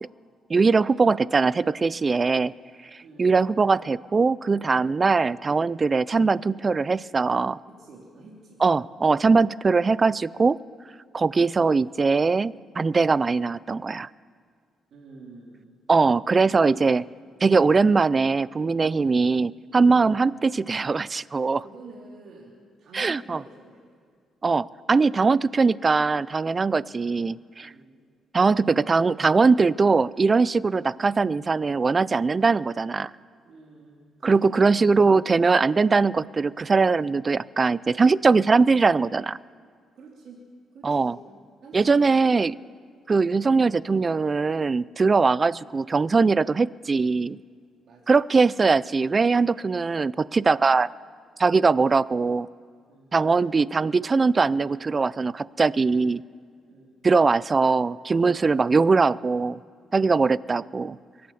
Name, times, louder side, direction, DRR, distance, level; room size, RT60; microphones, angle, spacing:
voice 1, 0.5-2.5 3.2-7.6 8.6-10.6 11.1-14.1 15.9-17.0 17.4-21.6 22.9-23.4 24.4-27.7 28.3-33.1 34.2-39.4 40.8-41.2 41.7-42.5 43.1-47.4 48.1-50.9 51.4-52.5 53.1-56.2 57.0-59.6 59.9-61.0, right 4 dB, 30° right, 21 dB, 0.3 m, -21 dB
voice 2, 3.0-3.3 7.7-8.6 14.9-15.7 16.7-16.8 19.0-19.2 20.0-20.2 21.6-23.8 27.6-27.9 33.4-34.6 35.0-35.4 40.0-40.4 40.7-41.3 41.6-42.2 47.8-48.2 52.9-53.1 56.7-56.9 60.5-60.7, right 3 dB, 65° right, -3 dB, 2.7 m, -47 dB
23.5 x 8.6 x 7.0 m, 2.1 s
cardioid pair, 90°, 0 cm